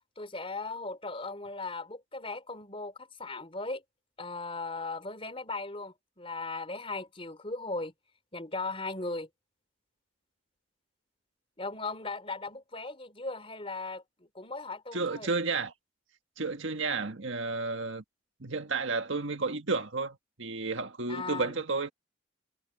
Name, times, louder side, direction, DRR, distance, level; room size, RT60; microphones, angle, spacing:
voice 1, 0.2-3.8 4.2-7.9 8.3-9.3 11.6-15.3 21.1-21.5, left 3 dB, 30° left, 3.9 m, -38 dB
voice 2, 14.9-15.7 16.4-18.0 18.4-21.9, right 3 dB, 70° right, 1.6 m, -32 dB
head